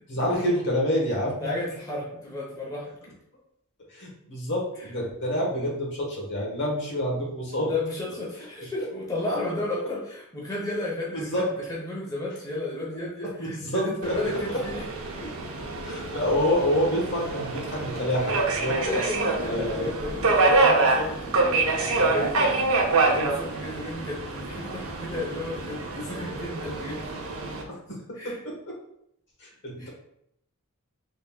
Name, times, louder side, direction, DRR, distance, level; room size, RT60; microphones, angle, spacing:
voice 1, 0.1-1.3 3.9-7.7 11.1-11.4 12.9-13.1 13.4-14.1 14.5-14.6 15.8-19.0 19.5-19.9 27.7-28.0 29.4-29.9, equal, 55° left, -2 dB, 1.1 m, -27 dB
voice 2, 1.4-3.0 4.8-4.9 7.6-14.9 15.2-15.3 18.8-22.6 23.0-27.1 28.1-28.4 29.8-29.9, left 2 dB, 15° left, -5 dB, 0.9 m, -33 dB
Subway metro underground, 14.0-27.6, right 3 dB, 70° right, 0.7 m, -26 dB
4.0 x 3.5 x 2.3 m, 0.74 s
head